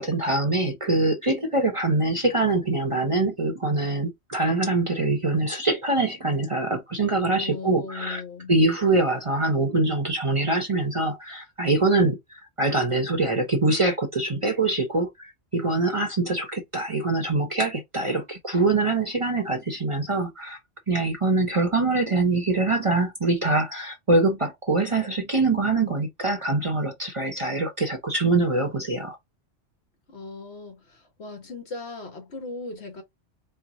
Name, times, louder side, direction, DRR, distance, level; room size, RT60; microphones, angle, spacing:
voice 1, 0.0-8.2 8.5-20.6 20.9-29.2, right 2 dB, 30° right, 0.8 m, -24 dB
voice 2, 7.4-8.5 30.1-33.0, left 3 dB, 65° left, 1.5 m, -38 dB
4.5 x 2.1 x 3.7 m
omnidirectional pair, 1.2 m